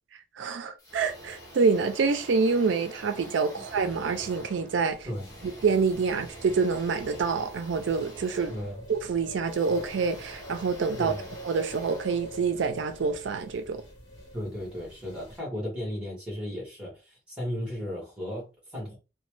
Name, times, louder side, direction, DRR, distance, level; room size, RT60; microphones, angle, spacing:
voice 1, 0.4-5.0 5.6-8.5 8.9-11.1 11.4-13.8, right 5 dB, 80° right, 0.4 m, -26 dB
sound 1, 0.8-13.0, right 1 dB, 20° left, 1.5 m, -47 dB
sound 2, 4.8-15.4, equal, 55° left, 1.1 m, -46 dB
voice 2, 8.5-8.8 11.0-11.3 14.3-19.0, equal, 5° right, 1.4 m, -35 dB
3.0 x 2.2 x 3.1 m
head